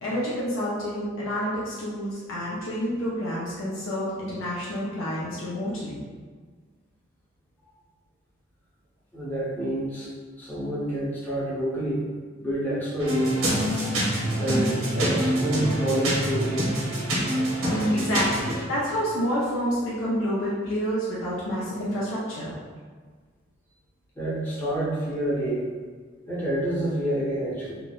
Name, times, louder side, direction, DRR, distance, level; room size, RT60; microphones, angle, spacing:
voice 1, 0.0-6.0 17.9-22.6, equal, 70° left, -7 dB, 0.5 m, -29 dB
voice 2, 9.1-10.1 10.4-12.0 12.4-13.4 14.4-16.6 24.2-25.7 26.3-27.8, right 1 dB, 10° left, -9 dB, 0.7 m, -28 dB
sound 1, 13.0-18.6, right 1 dB, 85° right, 0.8 m, -25 dB
2.8 x 2.1 x 2.4 m, 1.5 s
head